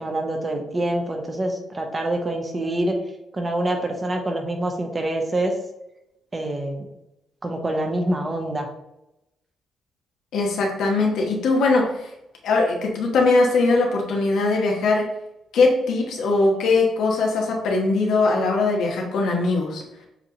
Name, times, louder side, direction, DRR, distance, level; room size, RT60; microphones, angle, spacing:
voice 1, 0.0-3.0 3.3-5.5 6.3-6.8 7.4-8.7, right 1 dB, 25° right, 3 dB, 0.9 m, -26 dB
voice 2, 10.3-12.1 12.4-15.1 15.5-19.8, left 3 dB, 75° left, 0 dB, 1.1 m, -20 dB
7.1 x 2.4 x 2.9 m, 0.87 s
cardioid pair, 90°, 0 cm